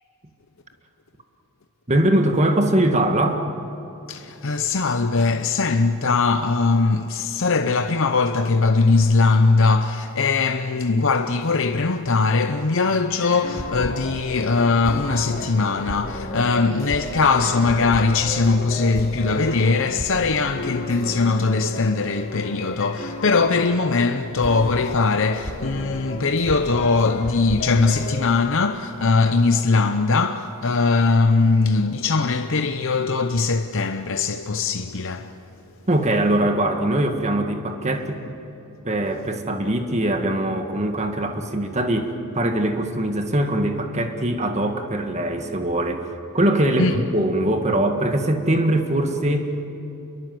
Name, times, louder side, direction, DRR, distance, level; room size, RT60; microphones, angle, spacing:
voice 1, 1.9-3.5 35.9-38.4 38.8-49.7, right 1 dB, 30° right, 1.8 m, -22 dB
voice 2, 4.1-35.3 46.8-47.0, left 4 dB, 60° left, 0.8 m, -20 dB
sound 1, 13.1-28.3, left 1 dB, 45° left, 3.6 m, -33 dB
27.5 x 22.5 x 7.8 m
head